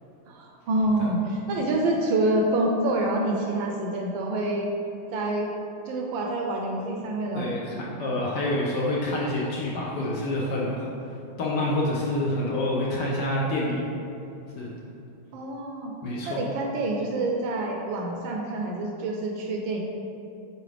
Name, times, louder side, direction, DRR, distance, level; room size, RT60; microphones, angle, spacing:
voice 1, 0.3-4.7 5.1-5.5 5.9-7.5 15.3-15.9 16.3-19.8, right 2 dB, 75° right, 1 dB, 1.2 m, -27 dB
voice 2, 7.3-10.8 11.4-13.8 14.6-14.7 16.0-16.4, left 1 dB, 70° left, -4 dB, 1.1 m, -27 dB
7.5 x 3.8 x 3.3 m, 2.7 s
omnidirectional pair, 2.4 m